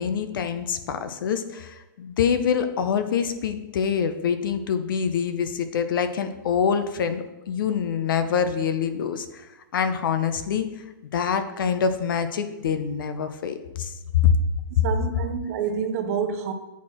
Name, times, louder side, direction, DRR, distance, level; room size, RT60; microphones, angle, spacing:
voice 1, 0.0-10.8 11.1-14.4, left 7 dB, 70° left, 0.8 m, -25 dB
voice 2, 14.8-16.5, right 7 dB, 40° right, 0.6 m, -27 dB
8.3 x 4.5 x 4.4 m
supercardioid pair, 170°, 11 cm